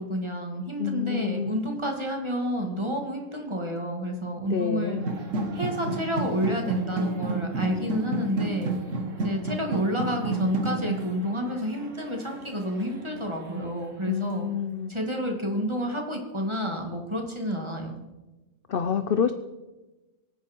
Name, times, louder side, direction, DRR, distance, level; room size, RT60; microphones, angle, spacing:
voice 1, 0.0-5.0 5.5-8.7 9.2-14.5 14.9-18.0, equal, 20° right, 2 dB, 2.4 m, -30 dB
voice 2, 0.8-1.6 4.4-5.2 14.1-14.9 18.7-19.3, left 7 dB, 50° left, 9 dB, 0.7 m, -27 dB
sound 1, 5.0-13.9, right 2 dB, 60° right, 1.9 m, -31 dB
24.5 x 9.5 x 4.6 m, 1.1 s
omnidirectional pair, 1.5 m